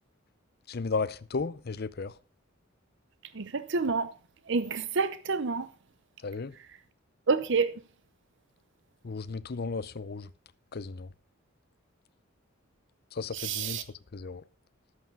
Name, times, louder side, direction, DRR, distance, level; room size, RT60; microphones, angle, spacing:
voice 1, 0.7-2.2 6.2-6.5 9.0-10.3 10.7-11.1 13.1-14.4, left 4 dB, 50° left, 0.6 m, -34 dB
voice 2, 3.3-4.1 4.5-5.7 7.3-7.7 13.3-13.8, right 4 dB, 60° right, 0.8 m, -28 dB
12.0 x 8.0 x 5.3 m
head